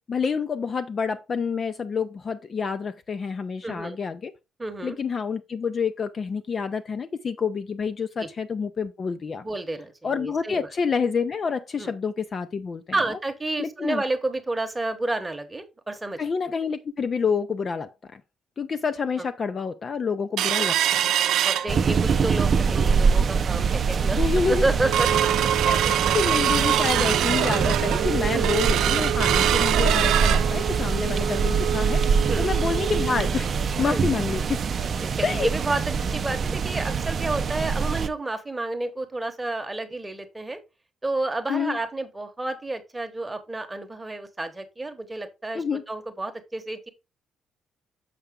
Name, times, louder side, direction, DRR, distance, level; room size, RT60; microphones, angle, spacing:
voice 1, 0.1-4.3 4.8-9.4 10.0-13.0 13.6-14.0 16.2-18.2 18.6-21.1 24.2-24.6 25.6-32.0 32.4-33.5 33.8-34.6 35.2-35.5 41.5-41.8 45.5-45.8, left 5 dB, 30° left, 0.4 m, -28 dB
voice 2, 3.6-4.0 4.6-5.0 8.2-8.3 9.4-10.7 11.8-11.9 12.9-16.2 19.2-19.3 21.4-25.3 28.3-28.5 32.3-32.5 33.8-34.0 35.0-40.6 41.0-46.9, right 2 dB, 10° right, 1.0 m, -30 dB
sound 1, 20.4-22.2 22.6-22.7 23.1-23.4 23.9-24.0 24.4-34.9 35.2-35.3 35.7-35.9 36.4-36.5, right 11 dB, 80° right, 0.6 m, -25 dB
sound 2, 21.7-38.1, right 5 dB, 35° right, 0.5 m, -24 dB
6.7 x 5.6 x 3.6 m
cardioid pair, 165°, 0 cm